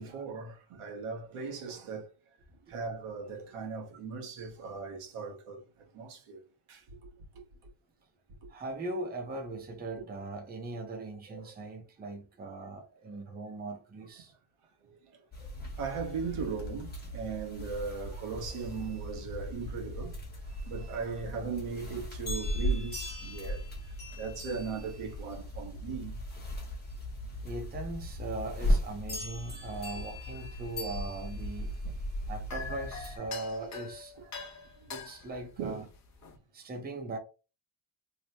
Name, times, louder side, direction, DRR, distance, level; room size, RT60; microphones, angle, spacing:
voice 1, 0.0-2.1 2.7-5.6 5.9-6.4 6.7-7.0 11.3-11.6 13.1-13.5 14.8-20.2 20.5-23.7 24.1-26.2 29.5-29.6 31.8-32.0 34.2-34.3 34.8-34.9 35.6-35.9, right 5 dB, 85° right, 1.2 m, -39 dB
voice 2, 8.5-14.3 27.4-31.7 32.3-34.2 34.9-35.8 36.5-37.2, right 2 dB, 20° right, 0.6 m, -39 dB
sound 1, 15.3-33.2, equal, 20° left, 1.0 m, -37 dB
sound 2, 31.3-36.4, left 5 dB, 35° left, 0.5 m, -45 dB
3.2 x 2.1 x 4.1 m
wide cardioid pair, 175°, 50 cm